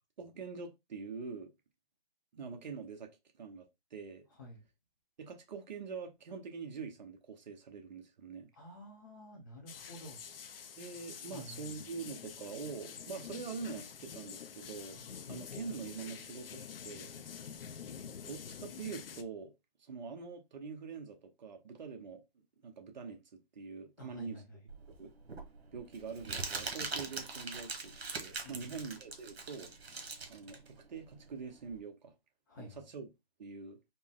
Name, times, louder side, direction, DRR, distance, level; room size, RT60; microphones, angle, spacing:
voice 1, 0.2-1.5 2.3-3.7 3.9-4.3 5.2-8.5 10.8-15.0 15.3-17.1 18.3-19.5 19.9-22.2 22.6-24.4 25.0-25.1 25.7-29.7 30.3-32.1 32.6-33.1 33.4-33.8, right 5 dB, 45° right, 0.9 m, -44 dB
voice 2, 4.3-4.6 8.5-10.2 11.3-11.6 14.9-15.1 24.0-24.6 28.4-28.7 32.5-32.8, left 1 dB, 20° left, 0.6 m, -51 dB
sound 1, 9.7-19.2, left 7 dB, 65° left, 0.6 m, -47 dB
Crumpling crinkling, 24.7-31.8, right 4 dB, 80° right, 1.3 m, -42 dB
4.2 x 2.1 x 3.6 m
hypercardioid pair, 160°, 31 cm